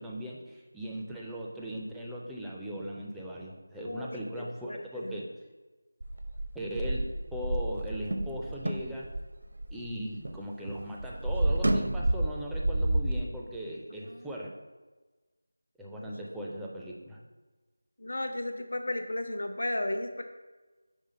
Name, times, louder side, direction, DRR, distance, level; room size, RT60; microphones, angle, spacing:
voice 1, 0.0-5.3 6.5-7.0 7.3-9.1 9.7-14.5 15.8-17.2, equal, ahead, -5 dB, 0.4 m, -38 dB
voice 2, 3.8-5.2 14.0-14.3 16.0-16.1 18.0-20.2, left 1 dB, 70° left, 6 dB, 0.7 m, -35 dB
sound 1, 6.0-10.4 10.7-13.2, right 1 dB, 65° right, 0.6 m, -30 dB
5.5 x 3.6 x 5.0 m, 1.2 s
figure-of-eight pair, 175°, 0 cm